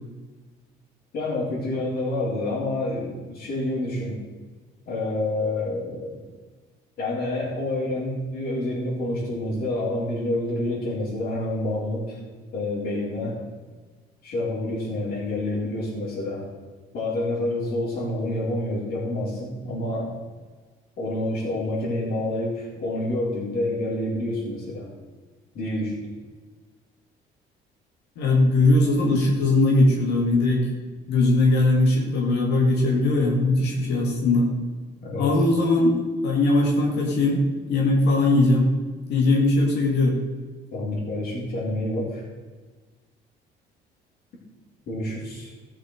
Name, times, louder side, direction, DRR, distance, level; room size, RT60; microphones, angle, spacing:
voice 1, 1.1-4.2 4.9-6.2 7.0-12.2 12.5-13.4 14.2-16.5 16.9-20.1 21.0-24.9 25.5-26.0 35.0-35.4 40.7-42.2 44.9-45.5, left 1 dB, 60° left, -9 dB, 4.2 m, -28 dB
voice 2, 28.2-30.6 31.1-34.5 35.2-35.9 36.2-38.7 39.1-40.2, left 2 dB, 80° left, -1 dB, 2.5 m, -20 dB
14.0 x 6.5 x 6.5 m, 1.4 s
cardioid pair, 110°, 17 cm